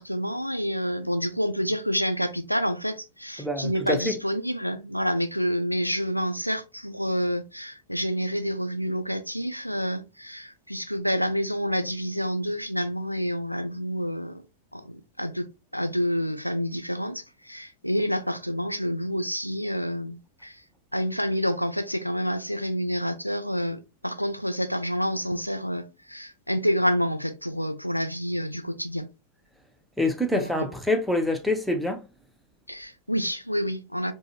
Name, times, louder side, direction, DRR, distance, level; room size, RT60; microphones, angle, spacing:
voice 1, 0.0-14.4 14.7-15.5 15.7-20.6 20.9-29.1 30.3-30.5 32.7-34.1, equal, 90° left, 0.3 m, -28 dB
voice 2, 3.4-4.0 30.0-32.0, left 1 dB, ahead, 0.6 m, -26 dB
3.5 x 2.1 x 2.7 m
figure-of-eight pair, 90°, 0 cm